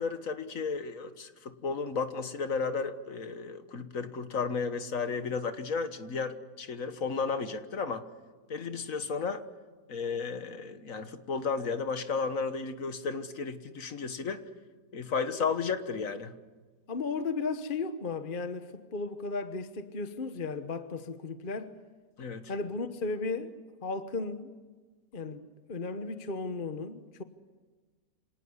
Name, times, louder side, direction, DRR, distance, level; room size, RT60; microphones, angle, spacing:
voice 1, 0.0-8.1 8.5-9.4 9.9-14.4 14.9-16.3 22.2-22.5, left 5 dB, 55° left, 1.7 m, -33 dB
voice 2, 16.9-21.8 22.5-23.5 23.8-24.5 25.1-27.2, left 4 dB, 35° left, 1.2 m, -35 dB
26.5 x 18.5 x 9.8 m
omnidirectional pair, 1.7 m